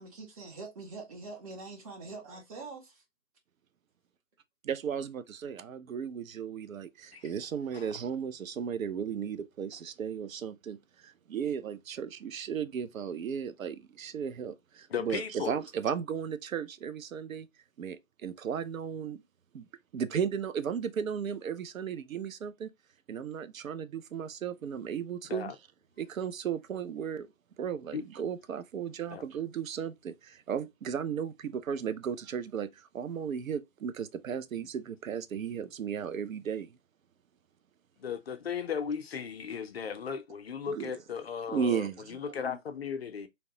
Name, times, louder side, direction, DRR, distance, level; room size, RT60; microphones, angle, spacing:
voice 1, 0.0-2.9, right 3 dB, 25° right, 0.8 m, -44 dB
voice 2, 4.6-17.5 17.8-19.2 19.5-19.7 19.9-22.7 23.1-25.5 26.0-27.3 27.6-36.7 40.7-40.9 41.5-42.3, right 7 dB, 85° right, 0.5 m, -35 dB
voice 3, 14.9-15.6 25.2-25.6 27.9-28.0 29.1-29.2 38.0-43.3, left 7 dB, 50° left, 0.5 m, -36 dB
2.9 x 2.1 x 2.8 m
figure-of-eight pair, 145°, 40 cm